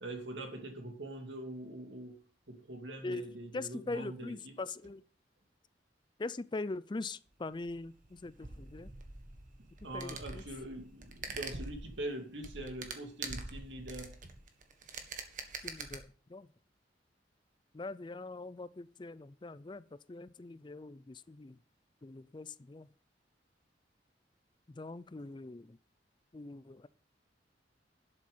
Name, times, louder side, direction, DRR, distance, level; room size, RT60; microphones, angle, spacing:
voice 1, 0.0-4.5 9.8-14.2, right 1 dB, 90° right, 2.6 m, -43 dB
voice 2, 3.5-5.0 6.2-8.9 9.9-10.4 15.6-16.5 17.7-21.6 22.0-22.9 24.7-25.8 26.3-26.9, left 3 dB, 25° left, 0.4 m, -42 dB
sound 1, 7.4-16.0, right 4 dB, 45° right, 1.6 m, -45 dB
12.0 x 7.6 x 5.5 m
head